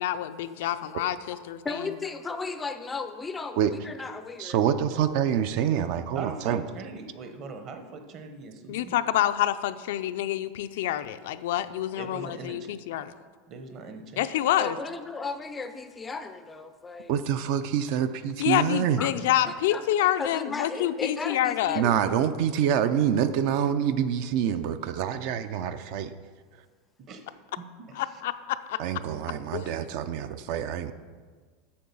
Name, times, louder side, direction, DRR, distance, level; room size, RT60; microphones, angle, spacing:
voice 1, 0.0-1.8 8.7-13.1 14.2-14.8 18.4-21.8 28.0-28.8 29.5-29.7, left 12 dB, 75° left, 11 dB, 0.4 m, -27 dB
voice 2, 1.6-4.6 14.6-17.1 19.0-22.2, left 4 dB, 15° left, 9 dB, 0.4 m, -36 dB
voice 3, 4.4-6.6 17.1-19.0 21.7-26.1 28.8-30.9, right 9 dB, 55° right, 11 dB, 0.4 m, -26 dB
voice 4, 6.1-9.0 12.0-12.7 13.5-14.2 27.1-27.2 27.6-28.2, right 4 dB, 35° right, 6 dB, 0.9 m, -41 dB
8.6 x 6.3 x 5.4 m, 1.5 s
supercardioid pair, 155°, 0 cm